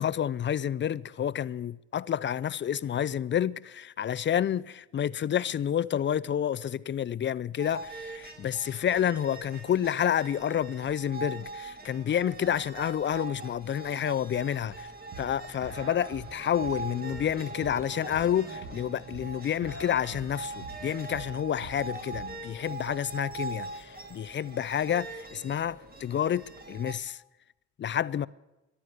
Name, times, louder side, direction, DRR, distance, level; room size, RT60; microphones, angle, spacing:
voice 1, 0.0-14.9 15.2-27.2 27.8-28.3, left 9 dB, 40° left, 0.4 m, -29 dB
sound 1, 7.6-26.9, right 3 dB, 30° right, 1.9 m, -42 dB
sound 2, 14.7-22.4, right 4 dB, 50° right, 2.6 m, -46 dB
14.0 x 11.5 x 7.8 m
cardioid pair, 90°, 30 cm